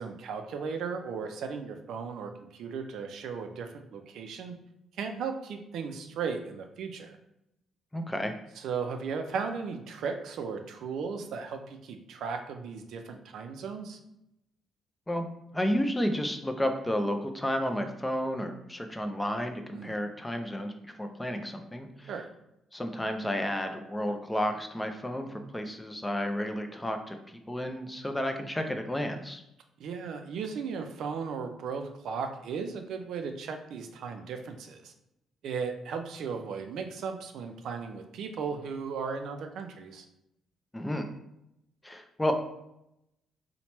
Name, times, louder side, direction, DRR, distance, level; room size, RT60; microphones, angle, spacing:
voice 1, 0.0-4.6 5.0-7.2 8.6-14.0 19.7-20.0 22.1-22.3 29.8-34.9 35.4-40.1, right 5 dB, 75° right, 5 dB, 0.3 m, -36 dB
voice 2, 7.9-8.3 15.1-15.3 15.5-22.1 22.7-27.2 27.5-29.4 40.7-41.1 41.8-42.3, equal, 10° left, 5 dB, 0.3 m, -31 dB
2.9 x 2.1 x 2.9 m, 0.83 s
cardioid pair, 90°, 0 cm